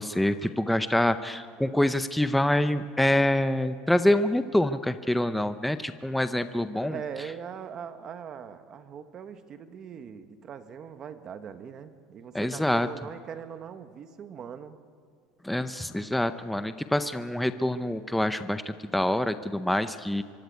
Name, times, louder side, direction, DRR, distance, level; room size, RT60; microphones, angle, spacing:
voice 1, 0.0-7.0 12.3-12.9 15.4-18.6 18.9-20.2, left 1 dB, ahead, 10 dB, 0.7 m, -26 dB
voice 2, 6.7-14.8, right 7 dB, 30° right, 10 dB, 1.4 m, -41 dB
25.0 x 24.0 x 9.4 m, 2.1 s
cardioid pair, 165°, 2 cm